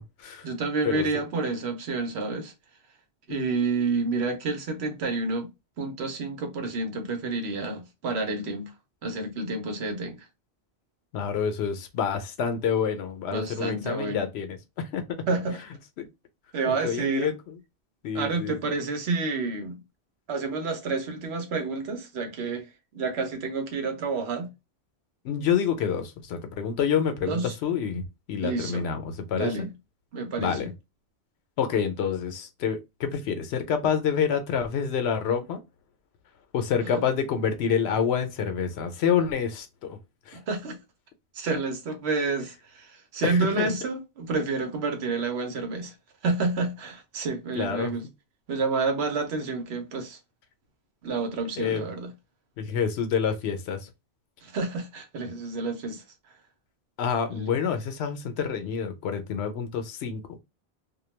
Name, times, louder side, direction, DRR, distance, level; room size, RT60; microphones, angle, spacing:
voice 1, 0.4-2.5 3.3-5.5 5.8-8.7 9.0-10.3 13.3-14.3 15.3-15.6 16.5-17.3 18.1-19.8 20.3-22.7 22.9-24.5 27.3-27.6 28.4-28.9 29.3-29.7 30.1-30.7 36.8-36.9 40.3-40.8 41.3-45.9 46.2-48.0 48.5-50.2 51.0-52.1 54.4-56.0 57.3-57.5, right 3 dB, 85° right, 1.0 m, -29 dB
voice 2, 11.1-15.2 16.0-16.1 16.7-17.3 18.0-18.7 25.2-29.7 30.4-30.7 31.6-35.6 36.5-40.0 40.3-40.4 43.2-43.7 47.5-48.0 51.6-51.8 52.6-53.9 57.0-60.4, left 7 dB, 80° left, 0.8 m, -28 dB
2.2 x 2.2 x 3.1 m
omnidirectional pair, 1.1 m